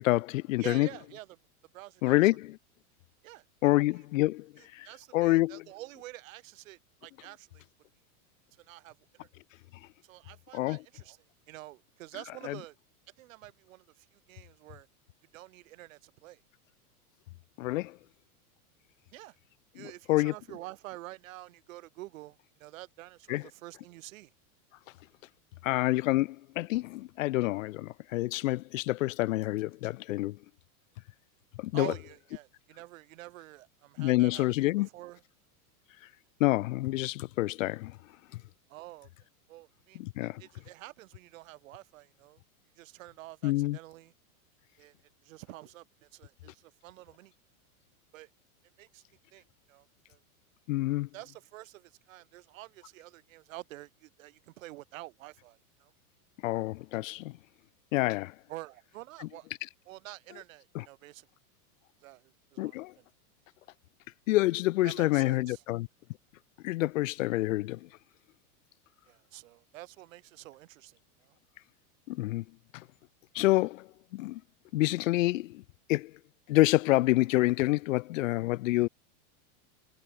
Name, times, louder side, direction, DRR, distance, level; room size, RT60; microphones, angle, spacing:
voice 1, 0.0-0.9 2.0-2.6 3.6-4.5 4.7-4.9 5.1-5.6 10.5-10.8 12.5-12.6 17.6-18.0 19.8-20.3 23.3-23.4 25.6-30.4 31.6-31.9 34.0-34.9 36.4-37.9 40.0-40.4 43.4-43.8 50.7-51.1 56.4-57.3 57.9-58.3 60.7-60.8 62.6-62.9 64.3-65.9 66.6-67.8 72.1-72.4 73.3-73.9 74.1-74.4 74.7-75.6 75.9-76.1 76.5-78.9, left 18 dB, 60° left, 0.7 m, -27 dB
voice 2, 0.6-1.4 1.7-2.2 3.2-4.0 4.6-7.7 8.5-9.3 10.0-12.8 13.2-14.9 15.3-16.4 19.1-19.4 19.7-24.3 31.7-35.2 38.7-39.1 39.5-42.4 42.8-44.1 44.8-45.0 45.2-47.3 48.1-48.3 48.8-49.0 49.3-50.2 51.1-55.9 58.5-59.5 59.9-61.3 62.0-63.1 64.8-65.6 69.1-71.4, right 17 dB, 60° right, 2.0 m, -48 dB
supercardioid pair, 165°, 44 cm